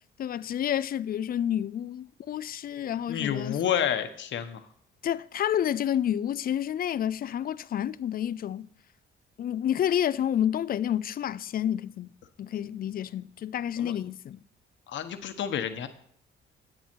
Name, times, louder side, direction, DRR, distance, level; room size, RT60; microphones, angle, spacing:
voice 1, 0.2-3.6 5.0-8.7 9.4-12.1 12.4-14.4, left 10 dB, 45° left, 0.4 m, -29 dB
voice 2, 3.1-4.6 13.8-13.9 14.9-15.9, left 9 dB, 70° left, 1.1 m, -29 dB
10.0 x 8.7 x 4.5 m
cardioid pair, 90°, 20 cm